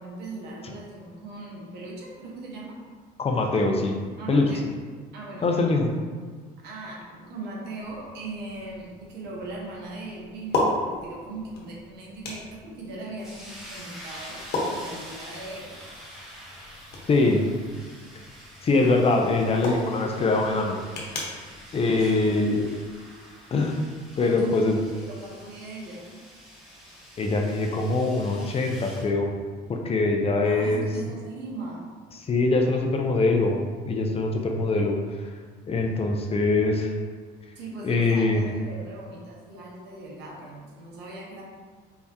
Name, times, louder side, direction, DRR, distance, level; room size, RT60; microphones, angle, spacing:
voice 1, 0.0-2.8 4.2-4.7 5.1-5.7 6.6-15.8 22.0-22.6 24.1-24.6 24.9-26.2 30.4-31.9 37.5-41.4, right 2 dB, 75° right, -3 dB, 1.2 m, -39 dB
voice 2, 3.2-4.0 4.3-4.4 5.4-5.9 17.1-17.4 18.6-20.8 21.7-22.7 23.5-23.8 24.2-24.8 27.2-29.3 29.7-30.9 32.3-35.0 35.7-36.9 37.8-38.4, left 3 dB, 35° left, 2 dB, 0.6 m, -23 dB
sound 1, 7.8-23.0, left 2 dB, 65° left, 1.1 m, -36 dB
sound 2, 13.2-29.1, equal, 5° right, 1.3 m, -46 dB
4.7 x 3.4 x 2.8 m, 1.5 s
supercardioid pair, 90°, 18 cm